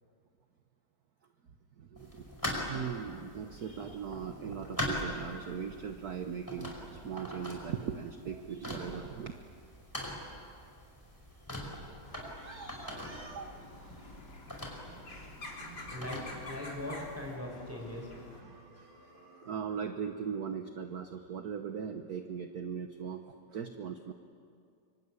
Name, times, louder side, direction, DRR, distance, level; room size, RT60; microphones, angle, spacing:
voice 1, 1.8-9.4 12.1-14.1 14.9-16.0 18.3-19.1 19.4-24.1, right 7 dB, 55° right, 6 dB, 1.4 m, -40 dB
sound 1, 2.0-17.3, left 1 dB, 10° left, 4.9 m, -42 dB
sound 2, 12.0-18.4, left 2 dB, 50° left, 3.8 m, -48 dB
voice 2, 15.9-18.1, left 1 dB, 5° right, -1 dB, 6.0 m, -40 dB
sound 3, 17.5-19.7, right 1 dB, 75° right, 5.7 m, -59 dB
25.0 x 24.5 x 9.8 m, 2.4 s
omnidirectional pair, 2.3 m